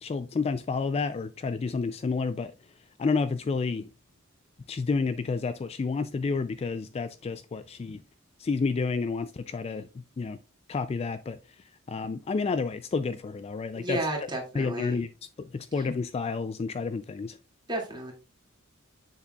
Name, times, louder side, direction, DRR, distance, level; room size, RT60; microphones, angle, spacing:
voice 1, 0.0-2.5 3.0-3.9 4.7-8.0 8.4-10.4 10.7-11.4 11.9-14.0 14.5-15.1 15.4-17.4, left 4 dB, 30° left, 0.3 m, -30 dB
voice 2, 13.8-15.0 17.7-18.1, right 1 dB, 20° right, 2.2 m, -32 dB
7.3 x 6.7 x 2.3 m
head